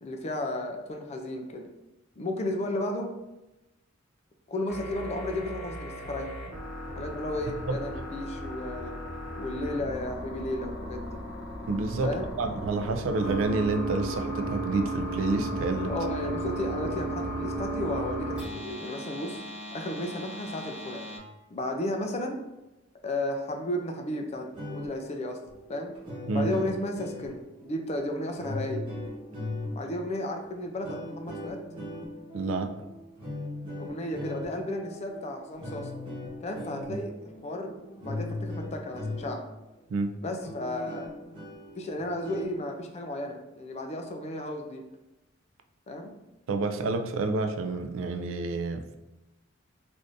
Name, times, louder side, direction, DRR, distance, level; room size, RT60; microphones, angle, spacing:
voice 1, 0.0-1.7 2.2-3.1 4.5-6.4 7.0-9.0 9.3-11.2 12.0-12.2 15.9-19.4 19.7-21.1 21.5-22.4 23.0-25.4 25.7-25.9 26.3-28.9 29.7-31.7 33.8-35.9 36.4-37.1 37.4-39.5 40.2-41.1 41.8-44.9 45.9-46.2, left 1 dB, 35° left, 4 dB, 0.4 m, -33 dB
sound 1, 4.7-21.2, right 1 dB, 5° right, 1.0 m, -35 dB
voice 2, 11.7-12.1 12.4-15.9 26.3-26.5 32.3-32.7 36.9-37.0 39.9-40.1 46.5-49.0, right 3 dB, 75° right, 6 dB, 0.3 m, -29 dB
sound 2, 24.4-39.6 40.0-40.1 40.4-42.6, left 1 dB, 25° right, 1.1 m, -39 dB
3.4 x 2.5 x 2.6 m, 1.0 s
head